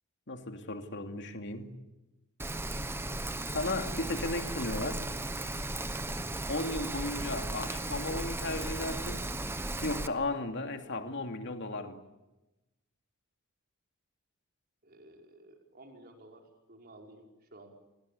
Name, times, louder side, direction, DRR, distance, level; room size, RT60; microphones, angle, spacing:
voice 1, 0.3-1.8 3.5-5.0 6.5-9.2 9.8-12.0, left 2 dB, 55° left, 2.7 m, -35 dB
Rain, 2.4-10.1, right 2 dB, 10° right, 1.1 m, -36 dB
voice 2, 14.8-17.7, right 1 dB, 45° right, 5.1 m, -54 dB
30.0 x 23.0 x 8.5 m
head